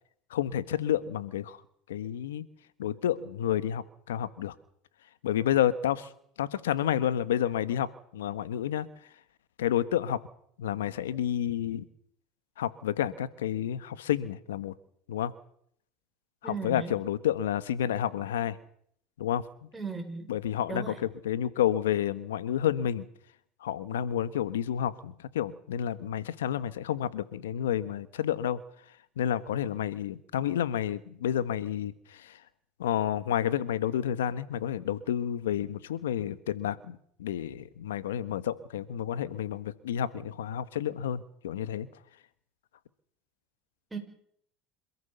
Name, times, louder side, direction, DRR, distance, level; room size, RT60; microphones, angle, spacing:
voice 1, 0.3-1.6 1.9-2.4 2.8-4.5 5.2-6.1 6.4-7.9 8.1-8.9 9.6-10.2 10.6-11.8 12.6-14.7 15.1-15.3 16.4-18.6 19.2-19.4 20.3-20.9 21.2-23.1 23.6-28.6 29.2-32.4 32.8-41.9, left 10 dB, 90° left, 14 dB, 1.3 m, -30 dB
voice 2, 16.4-16.9 19.7-20.3 20.7-21.0 43.9-44.0, right 4 dB, 15° right, 4 dB, 5.5 m, -36 dB
27.0 x 14.5 x 6.9 m, 0.67 s
hypercardioid pair, 90°, 0 cm